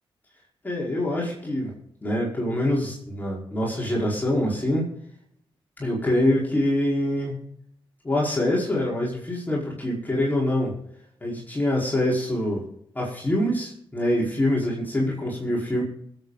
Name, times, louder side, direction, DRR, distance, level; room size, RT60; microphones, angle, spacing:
voice 1, 0.6-1.7 2.0-4.9 5.8-7.4 8.0-10.7 11.2-12.6 12.9-15.8, left 1 dB, 20° left, -5 dB, 5.1 m, -25 dB
26.0 x 8.7 x 4.2 m, 0.71 s
wide cardioid pair, 125°, 9 cm